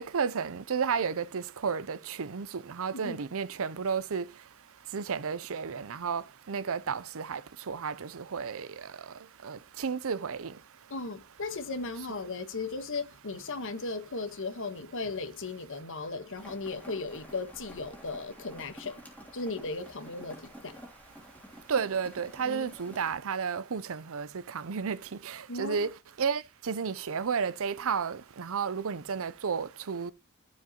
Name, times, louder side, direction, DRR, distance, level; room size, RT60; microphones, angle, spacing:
voice 1, 0.0-4.2 4.9-6.2 6.5-7.4 7.7-8.7 9.4-10.5 21.7-25.0 25.2-25.9 26.2-30.1, right 6 dB, 65° right, 0.6 m, -32 dB
voice 2, 10.9-19.0 19.3-20.8 22.4-22.7 25.5-25.9, left 3 dB, 60° left, 1.3 m, -36 dB
Rain, 16.3-23.1, equal, 5° left, 3.0 m, -50 dB
14.0 x 5.3 x 3.0 m
head